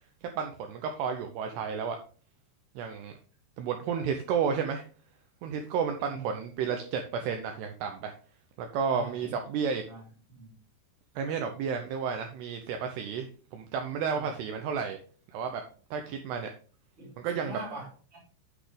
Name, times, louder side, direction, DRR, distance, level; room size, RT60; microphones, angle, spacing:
voice 1, 0.4-2.0 2.8-3.1 3.6-4.8 5.4-8.1 8.6-9.8 11.2-15.0 15.3-15.6 15.9-16.5 17.2-17.6, right 6 dB, 80° right, 5 dB, 2.4 m, -32 dB
voice 2, 8.9-9.3 9.9-10.5 14.2-14.3 17.0-18.2, right 3 dB, 15° right, -3 dB, 2.5 m, -43 dB
8.3 x 6.1 x 5.1 m, 0.40 s
omnidirectional pair, 5.7 m